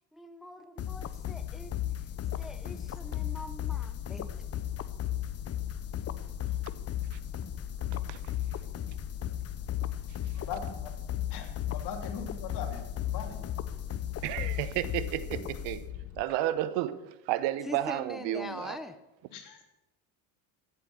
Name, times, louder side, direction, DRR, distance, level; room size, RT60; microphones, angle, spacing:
voice 1, 0.1-1.7 2.4-4.3 17.6-19.0, left 1 dB, ahead, 0.7 m, -43 dB
sound 1, 0.8-16.2, left 11 dB, 35° left, 0.7 m, -35 dB
voice 2, 10.3-10.9 11.3-13.4 19.3-19.6, left 6 dB, 65° left, 3.0 m, -40 dB
voice 3, 14.2-15.9 16.2-18.8, right 13 dB, 80° right, 1.0 m, -32 dB
15.0 x 8.2 x 7.0 m
cardioid pair, 110°, 42 cm